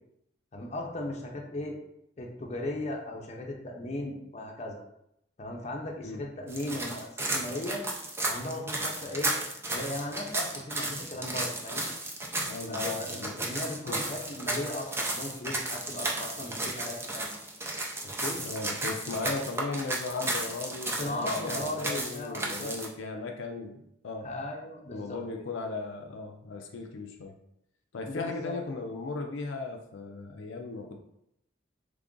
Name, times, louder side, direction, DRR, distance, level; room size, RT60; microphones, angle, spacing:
voice 1, 0.5-1.8 2.2-4.8 5.4-7.8 8.3-9.3 9.7-11.9 12.7-17.3 18.0-18.4 19.2-19.3 21.0-22.7 24.2-25.2 28.0-28.5, left 1 dB, 35° left, 0 dB, 0.6 m, -37 dB
sound 1, 6.5-22.9, right 2 dB, 15° right, 0.5 m, -34 dB
voice 2, 12.4-13.4 13.9-14.1 18.4-24.3 24.9-27.4 27.9-31.0, left 3 dB, 80° left, 3 dB, 0.4 m, -37 dB
3.3 x 2.5 x 3.7 m, 0.77 s
head